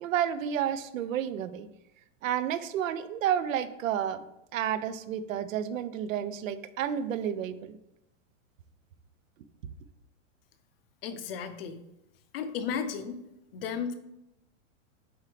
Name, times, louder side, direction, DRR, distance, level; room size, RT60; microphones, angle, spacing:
voice 1, 0.0-1.7 2.2-4.2 4.5-7.8, right 9 dB, 80° right, 13 dB, 0.7 m, -31 dB
voice 2, 11.0-11.8 12.3-13.2 13.5-13.9, left 7 dB, 45° left, 9 dB, 0.6 m, -34 dB
8.0 x 4.3 x 3.3 m, 0.86 s
supercardioid pair, 170°, 39 cm